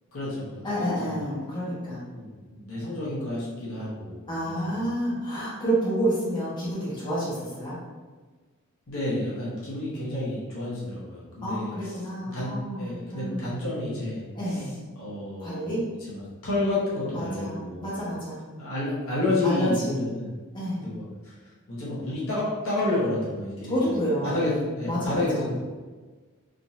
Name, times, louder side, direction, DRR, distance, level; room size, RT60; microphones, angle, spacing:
voice 1, 0.1-0.6 1.0-1.2 2.1-4.8 8.9-11.9 12.2-12.5 12.8-14.6 15.0-15.7 16.0-17.9 18.6-20.3 20.7-21.3 21.7-23.9 24.2-25.6, left 1 dB, 70° left, -8 dB, 1.2 m, -30 dB
voice 2, 0.6-2.0 4.3-7.8 11.4-13.5 14.3-14.7 15.4-15.8 17.1-18.4 19.4-20.0 20.5-20.8 23.7-24.4 24.9-25.4, equal, 20° left, -10 dB, 1.1 m, -29 dB
3.7 x 2.7 x 2.5 m, 1.4 s
head